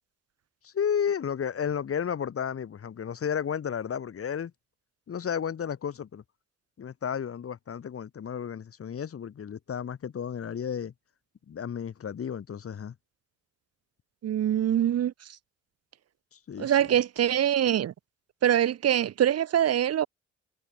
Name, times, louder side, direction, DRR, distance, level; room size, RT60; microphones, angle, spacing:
voice 1, 0.6-4.5 5.1-6.2 6.8-10.9 11.5-12.9 16.5-16.7, left 8 dB, 50° left, 2.7 m, -32 dB
voice 2, 14.2-15.1 16.6-17.9 18.4-20.1, right 10 dB, 55° right, 0.9 m, -24 dB
cardioid pair, 90°, 30 cm